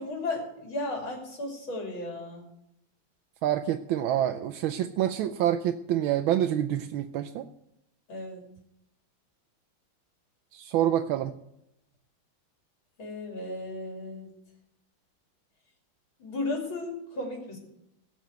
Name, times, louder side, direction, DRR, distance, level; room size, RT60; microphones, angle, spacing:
voice 1, 0.0-2.5 8.1-8.5 13.0-14.3 16.2-17.6, left 2 dB, 75° left, 0 dB, 3.6 m, -35 dB
voice 2, 3.4-7.5 10.5-11.3, right 11 dB, 80° right, 7 dB, 1.4 m, -27 dB
17.5 x 6.3 x 7.9 m, 0.82 s
omnidirectional pair, 2.2 m